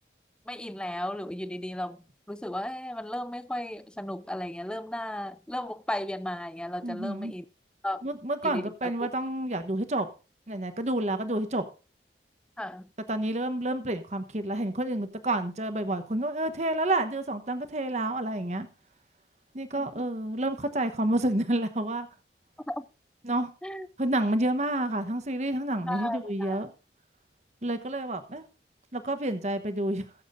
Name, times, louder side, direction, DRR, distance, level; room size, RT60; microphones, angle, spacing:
voice 1, 0.5-2.0 2.3-7.4 7.8-8.0 8.4-8.9 12.6-12.9 19.8-20.0 22.7-22.9 23.6-23.9 25.9-26.6, left 1 dB, 5° left, 0.4 m, -35 dB
voice 2, 6.8-7.3 8.0-10.1 10.5-11.6 13.1-18.7 19.5-22.1 23.2-23.5 24.0-26.7 27.6-28.4 28.9-30.0, right 1 dB, 40° right, 1.0 m, -29 dB
21.5 x 7.3 x 2.6 m
head